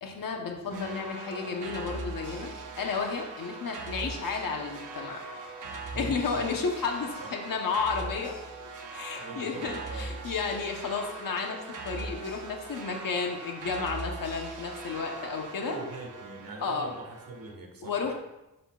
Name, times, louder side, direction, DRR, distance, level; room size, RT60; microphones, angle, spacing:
voice 1, 0.0-5.2 5.9-8.4 8.9-15.8 16.6-16.9 17.8-18.1, left 5 dB, 75° left, 2 dB, 1.1 m, -32 dB
sound 1, 0.7-3.8, left 3 dB, 5° right, 1.1 m, -46 dB
sound 2, 0.7-17.5, right 3 dB, 60° right, 1.1 m, -41 dB
voice 2, 5.9-6.5 7.2-7.3 9.2-10.1 15.6-18.1, right 3 dB, 80° right, 1 dB, 1.8 m, -42 dB
11.5 x 6.6 x 2.5 m, 0.95 s
wide cardioid pair, 165°, 34 cm